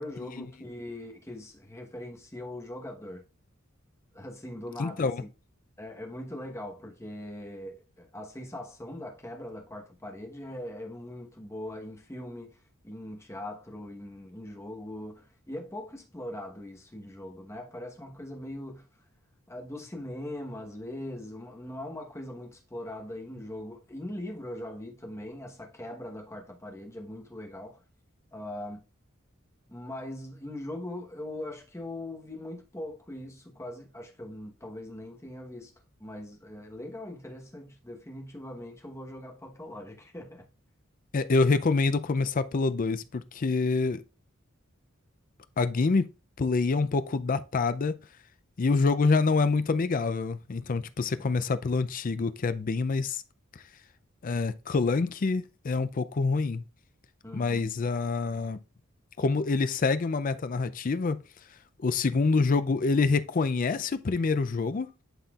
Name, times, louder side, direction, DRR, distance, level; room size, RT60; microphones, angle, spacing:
voice 1, 0.0-3.2 4.1-5.3 5.8-12.6 12.8-18.9 19.5-27.8 28.3-28.8 29.7-35.7 36.0-40.5 51.0-51.3 57.2-57.6, left 1 dB, 15° left, 1.1 m, -41 dB
voice 2, 4.8-5.2 41.1-44.0 45.6-46.1 46.4-48.0 48.6-53.2 54.2-56.6 57.3-58.6 59.2-61.2 61.8-64.9, left 4 dB, 40° left, 0.4 m, -26 dB
11.5 x 4.2 x 2.4 m
head